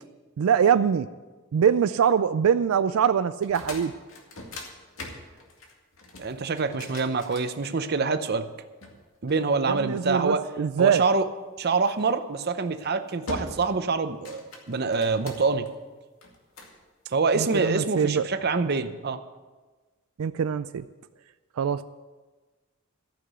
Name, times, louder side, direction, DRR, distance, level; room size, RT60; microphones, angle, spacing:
voice 1, 0.4-1.1 1.5-3.9 9.6-11.0 17.3-18.2 20.2-20.9 21.6-21.8, right 7 dB, 90° right, 12 dB, 0.4 m, -23 dB
sound 1, 3.3-8.1 8.8-10.1 11.9-12.2 12.7-12.9 13.3-13.8 14.1-15.7 16.2-16.8, left 2 dB, 85° left, 2.2 m, -41 dB
voice 2, 6.2-8.5 9.2-10.4 10.8-11.3 11.6-15.7 17.1-19.2, right 4 dB, 50° right, 10 dB, 0.7 m, -26 dB
14.0 x 6.0 x 7.9 m, 1.3 s
head